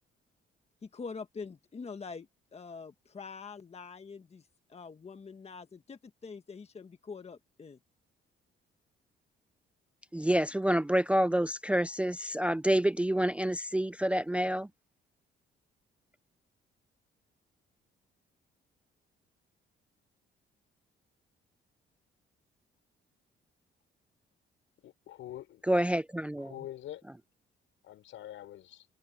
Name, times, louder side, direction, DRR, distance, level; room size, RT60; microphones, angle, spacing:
voice 1, 0.8-7.8, left 5 dB, 30° left, 1.4 m, -45 dB
voice 2, 10.1-14.7 25.7-26.5, right 1 dB, 5° right, 0.4 m, -28 dB
voice 3, 24.8-25.6 26.4-27.0 27.8-28.9, left 12 dB, 80° left, 6.1 m, -45 dB
open air
cardioid pair, 90°, 20 cm